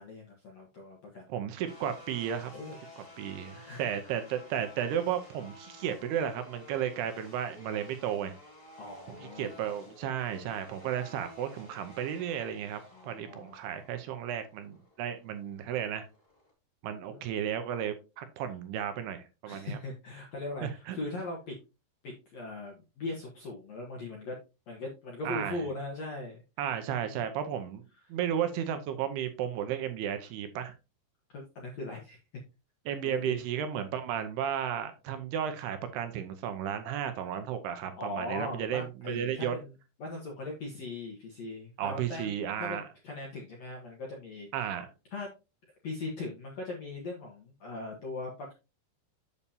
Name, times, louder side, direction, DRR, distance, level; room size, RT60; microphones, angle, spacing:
voice 1, 0.0-1.2 2.5-2.8 3.5-4.1 8.8-9.6 12.9-13.6 17.1-17.2 19.4-21.5 22.0-24.3 24.7-26.4 27.1-27.2 31.3-32.2 33.0-33.4 38.0-39.7 40.0-42.3 42.6-44.5 45.1-45.3 45.8-48.5, left 2 dB, 70° left, -1 dB, 1.6 m, -39 dB
voice 2, 1.3-2.5 3.0-8.4 9.1-16.1 16.8-19.8 20.6-21.0 25.2-25.6 26.6-27.8 28.1-30.7 32.9-39.6 41.8-42.9 44.5-44.9, right 9 dB, 80° right, 9 dB, 2.6 m, -34 dB
sound 1, 1.6-16.5, left 1 dB, 45° left, 0.7 m, -53 dB
8.3 x 7.0 x 2.8 m, 0.28 s
omnidirectional pair, 5.1 m